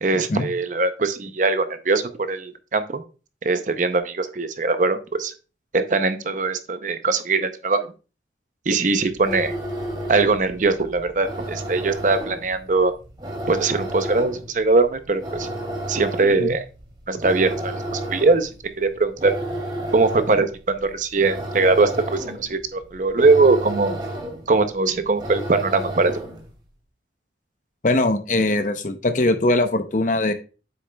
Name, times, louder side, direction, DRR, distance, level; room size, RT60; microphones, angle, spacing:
voice 1, 0.0-2.0 2.3-3.0 3.4-5.3 5.7-7.9 8.7-9.6 10.1-12.9 13.5-15.5 15.9-16.6 17.1-18.5 18.8-19.3 19.9-24.0 24.5-26.1, right 3 dB, 45° right, 10 dB, 0.6 m, -21 dB
sound 1, 9.1-26.5, right 1 dB, 25° right, 2.2 m, -32 dB
voice 2, 27.8-30.3, left 2 dB, 45° left, 9 dB, 0.7 m, -21 dB
7.9 x 6.3 x 2.2 m, 0.33 s
head